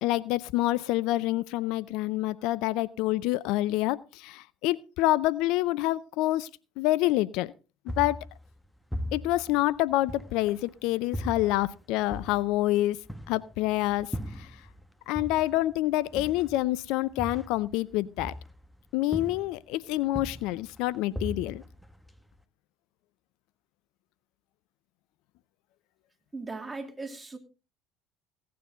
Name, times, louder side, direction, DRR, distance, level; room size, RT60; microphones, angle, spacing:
voice 1, 0.0-6.5 6.8-7.5 7.9-8.2 9.1-13.0 13.3-14.5 15.1-18.3 18.9-21.6, left 16 dB, 65° left, 0.5 m, -27 dB
sound 1, 7.9-10.7 11.1-14.9 15.2-18.8 19.1-19.7 20.0-22.4, equal, 5° left, 1.3 m, -39 dB
voice 2, 26.3-27.4, right 3 dB, 20° right, 2.6 m, -38 dB
17.0 x 9.4 x 3.8 m
hypercardioid pair, 70°, 0 cm